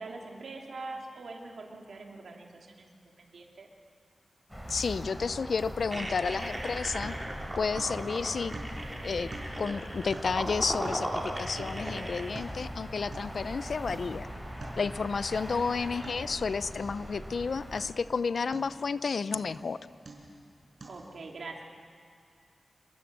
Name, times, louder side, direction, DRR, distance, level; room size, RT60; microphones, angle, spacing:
voice 1, 0.0-3.7 20.9-21.6, right 3 dB, 80° right, 1 dB, 3.0 m, -43 dB
sound 1, 4.5-17.8, equal, 5° left, 4.7 m, -41 dB
voice 2, 4.7-7.1 7.6-8.5 9.0-9.3 9.6-14.3 14.8-19.8, left 5 dB, 70° left, 15 dB, 0.6 m, -31 dB
sound 2, 4.7-4.8 5.1-6.6 7.0-7.4 7.8-8.1 8.5-8.9 9.3-11.2 11.6-11.9 12.2-12.6 13.1-13.4 13.9-14.1 14.4-14.9 15.2-15.6 16.0-16.3 16.7-17.5 17.8-18.1 18.5-18.9 19.3-19.6 20.1-20.4 20.8-20.9, right 2 dB, 50° right, 5.6 m, -47 dB
sound 3, 5.9-12.2, right 1 dB, 15° right, 3.4 m, -37 dB
27.5 x 22.0 x 7.5 m, 2.4 s
wide cardioid pair, 130°, 0 cm